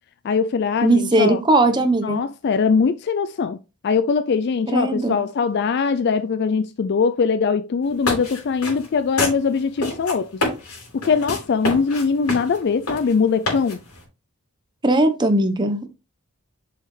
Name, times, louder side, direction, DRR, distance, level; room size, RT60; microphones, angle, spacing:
voice 1, 0.2-1.4 2.0-3.6 3.8-10.4 10.9-13.8, left 5 dB, 50° left, 0.4 m, -21 dB
voice 2, 0.8-2.2 4.7-5.2 14.8-15.9, right 2 dB, 20° right, 1.0 m, -18 dB
sound 1, 7.8-14.0, left 2 dB, 90° left, 4.8 m, -28 dB
7.5 x 5.6 x 3.2 m
head